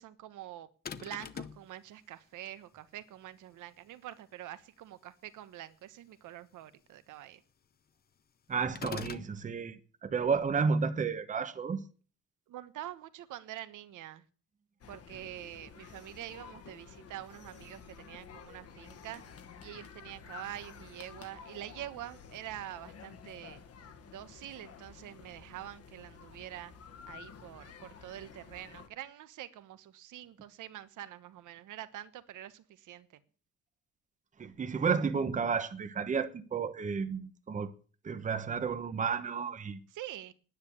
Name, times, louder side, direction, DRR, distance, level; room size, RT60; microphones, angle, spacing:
voice 1, 0.0-7.4 12.5-14.2 14.9-19.2 19.6-23.6 24.1-26.7 27.1-33.1 39.9-40.3, right 13 dB, 75° right, 1.3 m, -46 dB
sound 1, 0.9-1.7 8.8-9.3, left 7 dB, 30° left, 0.7 m, -41 dB
voice 2, 8.5-11.8 34.4-37.7 38.0-39.8, right 5 dB, 25° right, 1.0 m, -32 dB
sound 2, 14.8-28.9, left 6 dB, 50° left, 1.6 m, -51 dB
10.0 x 9.6 x 8.5 m
cardioid pair, 155°, 31 cm